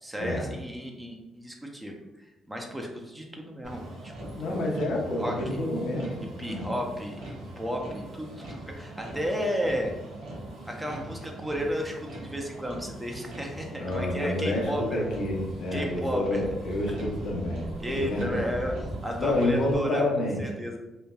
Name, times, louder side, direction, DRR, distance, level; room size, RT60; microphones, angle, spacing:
voice 1, 0.0-4.7 5.2-5.6 6.4-7.2 7.6-9.9 10.7-15.1 15.7-16.4 17.8-20.8, equal, 10° right, 1 dB, 0.5 m, -33 dB
Motor vehicle (road), 3.6-19.8, right 1 dB, 90° right, 0.7 m, -40 dB
voice 2, 4.3-6.7 13.8-18.4 19.2-20.4, left 1 dB, 70° left, 0 dB, 0.6 m, -29 dB
3.0 x 2.1 x 2.3 m, 1.0 s
cardioid pair, 90°, 0 cm